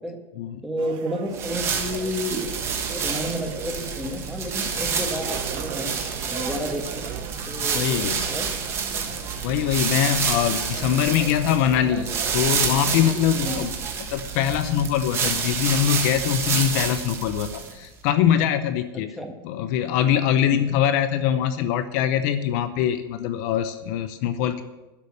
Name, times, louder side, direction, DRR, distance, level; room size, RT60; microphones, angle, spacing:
voice 1, 0.6-2.5 2.9-5.9 6.3-7.0 7.5-8.5 13.3-13.7 19.2-19.3 20.4-20.6, equal, ahead, 2 dB, 1.4 m, -31 dB
sound 1, 0.8-14.1, right 9 dB, 40° right, 1.0 m, -39 dB
sound 2, 1.3-17.9, right 6 dB, 20° right, 1.5 m, -28 dB
voice 2, 7.7-8.2 9.4-13.7 14.1-19.2 19.4-24.6, left 10 dB, 50° left, 11 dB, 0.6 m, -23 dB
12.0 x 6.8 x 8.4 m, 1.1 s
supercardioid pair, 170°, 12 cm